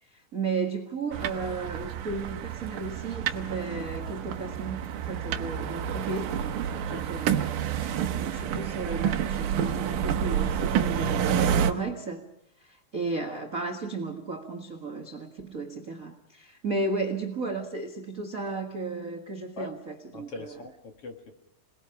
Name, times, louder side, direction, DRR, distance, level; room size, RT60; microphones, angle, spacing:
voice 1, 0.0-6.4 6.9-7.7 8.2-12.2 12.6-20.6, right 3 dB, 45° right, 5 dB, 1.1 m, -34 dB
sound 1, 1.1-11.7, right 8 dB, 70° right, 2.5 m, -29 dB
voice 2, 6.7-7.0 19.6-19.7 20.1-21.3, left 2 dB, 45° left, 4 dB, 2.3 m, -41 dB
27.5 x 20.5 x 5.8 m, 0.79 s
omnidirectional pair, 4.2 m